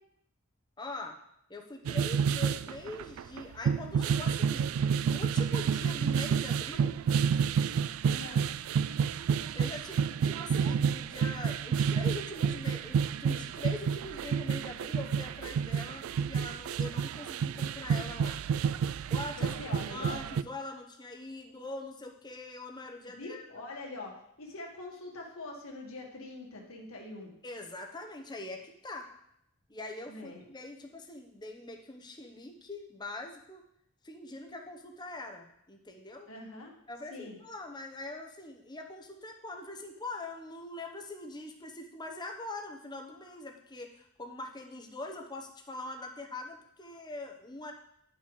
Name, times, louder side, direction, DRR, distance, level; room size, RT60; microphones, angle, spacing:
voice 1, 0.8-1.2 1.5-4.7 5.0-7.0 9.5-18.4 19.1-23.5 27.4-29.1 29.7-33.6 34.0-36.3 36.9-47.7, left 2 dB, 20° left, 3 dB, 0.9 m, -43 dB
sound 1, 1.9-20.4, right 7 dB, 75° right, 0.3 m, -30 dB
voice 2, 8.0-8.4 19.4-20.2 23.2-27.3 30.1-30.4 36.3-36.8 37.1-37.4, left 2 dB, 75° left, -1 dB, 1.8 m, -43 dB
11.5 x 5.8 x 3.2 m, 0.76 s
head